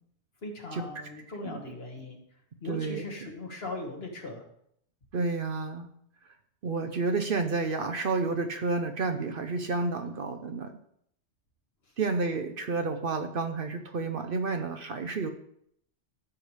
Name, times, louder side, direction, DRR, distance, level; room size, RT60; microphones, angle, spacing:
voice 1, 0.4-2.2 2.6-4.4, left 2 dB, 55° left, 1 dB, 1.8 m, -39 dB
voice 2, 2.7-3.0 5.1-5.9 6.6-10.8 12.0-15.3, right 3 dB, 55° right, 7 dB, 0.8 m, -30 dB
12.0 x 6.8 x 3.3 m, 0.70 s
omnidirectional pair, 1.2 m